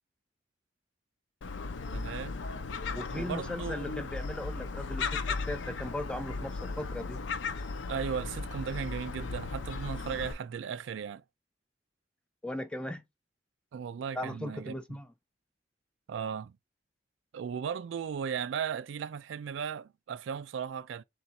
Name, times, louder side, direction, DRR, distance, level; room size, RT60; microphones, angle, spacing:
Gull seagull, 1.4-10.3, left 4 dB, 80° left, 0.5 m, -36 dB
voice 1, 1.9-2.4 3.1-4.0 7.7-11.2 13.7-14.7 16.1-16.6 17.3-21.0, right 7 dB, 85° right, 0.3 m, -36 dB
voice 2, 2.9-7.2 12.4-13.0 14.2-15.1, left 1 dB, 5° left, 0.3 m, -38 dB
3.9 x 2.4 x 4.1 m
head